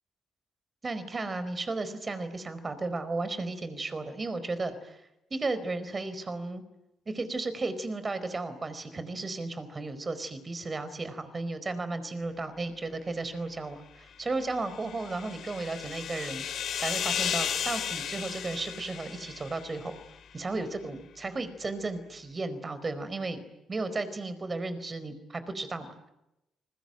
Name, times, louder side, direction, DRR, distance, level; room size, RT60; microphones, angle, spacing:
voice 1, 0.8-5.0 5.3-6.6 7.1-16.5 16.8-19.9 20.3-26.1, right 3 dB, 30° right, 12 dB, 4.6 m, -34 dB
sound 1, 14.4-20.0, left 8 dB, 65° left, 3.7 m, -34 dB
29.0 x 21.5 x 9.1 m, 0.89 s
cardioid pair, 90°, 0 cm